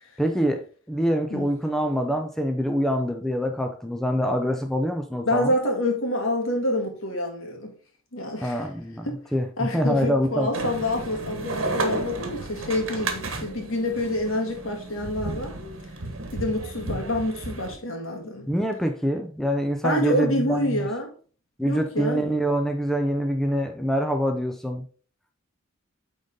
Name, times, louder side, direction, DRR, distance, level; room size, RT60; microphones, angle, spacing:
voice 1, 0.2-5.5 8.4-10.5 18.5-20.9 21.6-24.8, equal, ahead, 0.5 m, -25 dB
voice 2, 5.2-7.7 8.1-8.7 9.0-9.2 9.6-15.6 16.3-18.5 19.8-21.1 21.6-22.2, left 1 dB, 80° left, 1.8 m, -27 dB
sound 1, 10.5-17.8, right 2 dB, 75° right, 1.2 m, -33 dB
8.8 x 4.0 x 3.8 m
head